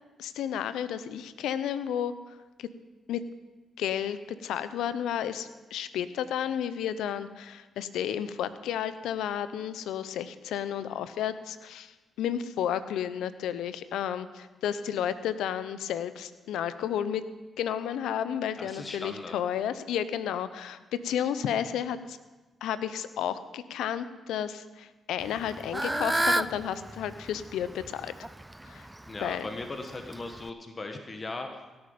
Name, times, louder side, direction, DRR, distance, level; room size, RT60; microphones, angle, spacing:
voice 1, 0.2-2.1 2.6-2.7 3.1-3.2 3.8-17.2 17.6-20.8 21.0-22.2 22.6-28.3 28.7-28.9 29.2-29.5, left 9 dB, 80° left, 13 dB, 0.6 m, -32 dB
voice 2, 18.6-19.4 29.1-31.5, left 2 dB, 35° left, 5 dB, 1.3 m, -38 dB
Fowl / Bird, 25.2-30.5, right 1 dB, 15° right, 0.4 m, -32 dB
17.0 x 8.8 x 5.2 m, 1.2 s
supercardioid pair, 50°, 0 cm